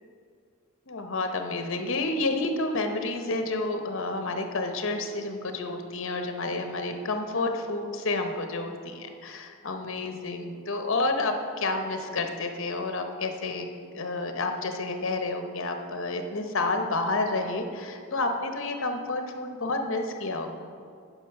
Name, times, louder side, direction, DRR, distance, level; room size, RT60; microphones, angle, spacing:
voice 1, 0.9-13.7 13.9-20.6, left 2 dB, 60° left, 5 dB, 0.9 m, -30 dB
8.9 x 5.9 x 5.8 m, 2.3 s
head